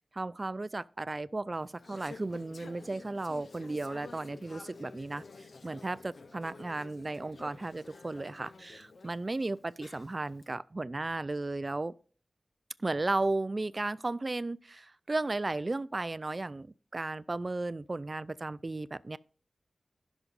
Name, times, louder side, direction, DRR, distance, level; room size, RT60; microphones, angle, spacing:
voice 1, 0.1-5.2 5.6-11.9 12.8-16.7 16.9-19.2, right 2 dB, 40° right, 0.3 m, -34 dB
Conversation / Chatter, 1.5-10.5, left 3 dB, 70° left, 0.6 m, -51 dB
15.5 x 6.0 x 2.5 m
cardioid pair, 50°, 0 cm